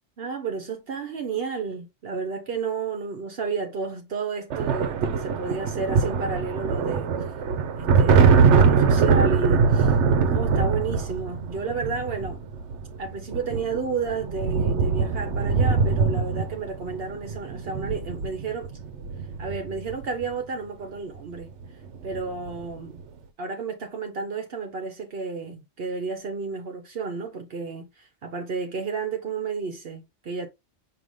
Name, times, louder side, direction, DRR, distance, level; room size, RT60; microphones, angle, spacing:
voice 1, 0.2-7.1 7.8-10.0 10.2-12.4 13.0-18.7 19.4-21.5 22.0-23.0 23.4-30.5, right 4 dB, 60° right, 1.0 m, -32 dB
sound 1, 4.5-20.2 21.4-21.7 21.9-22.6, right 5 dB, 85° right, 1.0 m, -22 dB
5.2 x 2.9 x 3.1 m
omnidirectional pair, 1.2 m